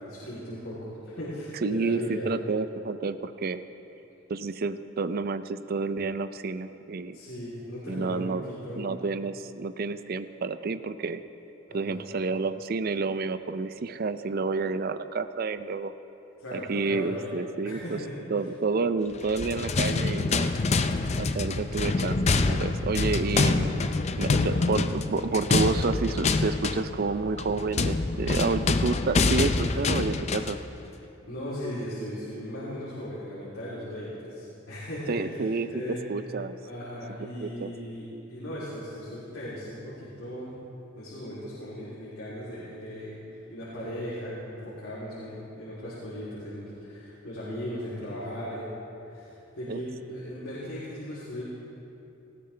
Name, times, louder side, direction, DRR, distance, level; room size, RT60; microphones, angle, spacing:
voice 1, 0.0-2.3 7.1-8.9 11.7-12.0 16.4-17.3 17.6-18.1 24.0-24.6 29.5-29.7 31.3-36.3 36.6-40.5 40.9-48.8 49.0-51.4, equal, 90° left, -9 dB, 3.1 m, -37 dB
voice 2, 1.6-3.6 4.3-7.2 7.9-8.4 8.8-11.2 11.7-15.9 16.5-18.0 18.3-20.5 21.2-23.7 24.2-30.6 35.1-36.6 37.4-37.7 49.7-49.8, right 4 dB, 50° right, 12 dB, 0.5 m, -29 dB
sound 1, 19.2-30.6, left 3 dB, 35° left, 0.5 m, -26 dB
18.5 x 15.5 x 3.3 m, 2.9 s
head